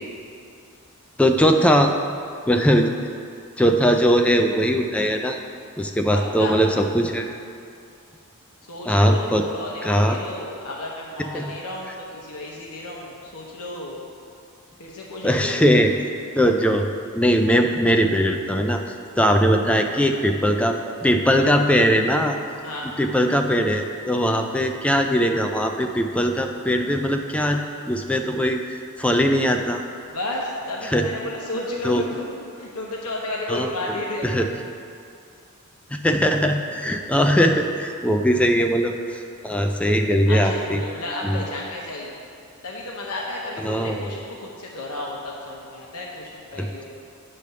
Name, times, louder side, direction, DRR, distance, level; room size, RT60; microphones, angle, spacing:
voice 1, 1.2-1.9 2.5-2.9 3.6-5.4 5.8-7.3 8.9-9.5 9.8-10.2 11.3-11.5 15.2-15.9 16.4-16.9 17.1-18.8 19.2-22.4 23.0-27.6 27.9-28.6 29.0-29.8 30.8-31.1 31.8-32.0 33.5-34.0 34.2-34.5 35.9-40.8 41.2-41.4 43.6-44.1 46.6-46.8, equal, 5° left, 4 dB, 0.4 m, -20 dB
voice 2, 6.1-6.6 8.7-14.0 14.8-15.6 22.6-22.9 30.1-34.4 40.3-42.1 42.6-46.8, left 1 dB, 80° left, -3 dB, 1.0 m, -32 dB
9.8 x 3.4 x 6.7 m, 2.5 s
head